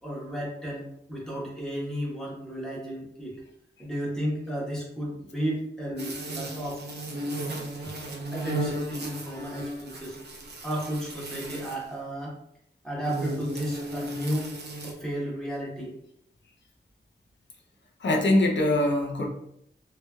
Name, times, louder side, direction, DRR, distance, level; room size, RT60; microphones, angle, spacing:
voice 1, 0.0-3.4 3.8-6.8 7.8-8.0 8.3-10.2 10.6-12.4 12.8-14.5 14.8-16.0, equal, 5° left, -5 dB, 1.1 m, -33 dB
sound 1, 6.0-11.9 13.0-14.9, right 1 dB, 65° right, 0.6 m, -35 dB
voice 2, 18.0-19.3, left 1 dB, 75° left, 0 dB, 0.6 m, -23 dB
3.0 x 2.8 x 2.3 m, 0.76 s
wide cardioid pair, 90°, 19 cm